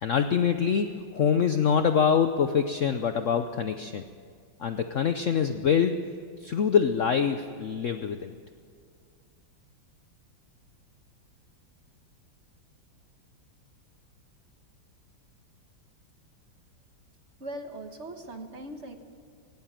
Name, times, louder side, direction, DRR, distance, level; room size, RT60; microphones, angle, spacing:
voice 1, 0.0-4.0 4.6-6.0 6.4-8.3, left 7 dB, 85° left, 8 dB, 0.6 m, -25 dB
voice 2, 17.4-19.0, right 1 dB, 35° right, 5 dB, 1.5 m, -39 dB
19.0 x 18.5 x 7.5 m, 2.2 s
omnidirectional pair, 2.2 m